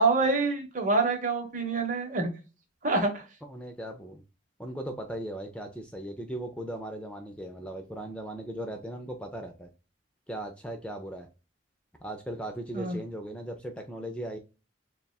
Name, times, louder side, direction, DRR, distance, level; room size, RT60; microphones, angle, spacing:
voice 1, 0.0-2.3 2.8-3.2 12.7-13.0, right 3 dB, 40° right, 1.2 m, -26 dB
voice 2, 3.4-4.2 4.6-9.7 10.3-11.3 12.0-14.4, right 1 dB, 5° left, 0.5 m, -38 dB
6.8 x 2.3 x 2.3 m
head